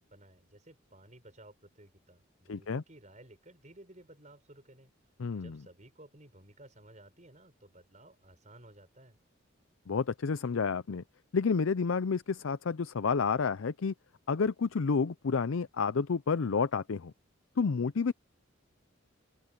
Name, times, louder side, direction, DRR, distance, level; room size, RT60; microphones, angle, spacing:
voice 1, 0.1-9.2, right 1 dB, 35° right, 6.0 m, -56 dB
voice 2, 2.5-2.8 5.2-5.6 9.9-11.0 11.3-13.9 14.3-17.1 17.6-18.1, left 5 dB, 75° left, 0.5 m, -30 dB
open air
head